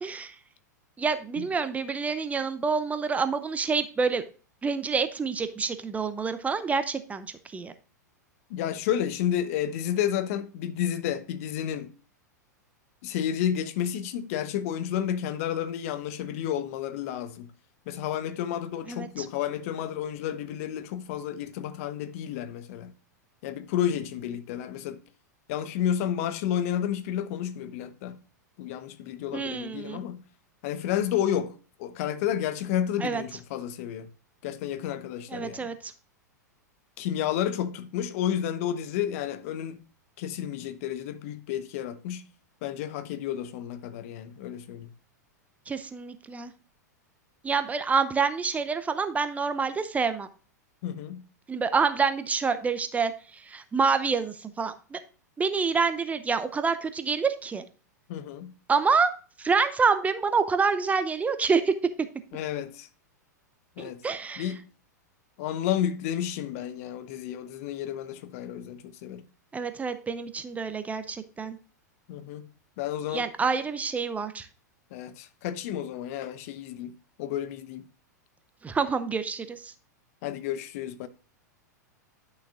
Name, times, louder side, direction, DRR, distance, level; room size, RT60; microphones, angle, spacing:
voice 1, 0.0-0.3 1.0-4.2 4.6-7.3 7.5-7.7 18.9-19.2 29.3-30.0 33.0-33.2 35.3-35.9 45.7-46.5 47.4-50.3 51.5-53.1 53.5-55.0 55.4-57.6 58.7-59.1 59.4-61.7 63.8-64.5 69.5-71.6 73.1-74.5 78.6-79.7, right 5 dB, 15° right, 0.7 m, -27 dB
voice 2, 8.5-11.9 13.0-17.5 17.9-22.9 23.4-25.0 25.5-28.2 28.6-30.2 30.6-31.5 31.8-34.1 34.4-35.7 37.0-39.8 40.2-42.2 42.6-44.9 50.8-51.2 58.1-58.5 62.3-62.9 63.8-64.0 64.4-64.6 65.4-69.2 72.1-72.5 72.8-73.3 74.9-76.9 77.2-77.9 80.2-81.1, left 10 dB, 55° left, 0.9 m, -31 dB
11.0 x 6.4 x 2.3 m
figure-of-eight pair, 100°, 10 cm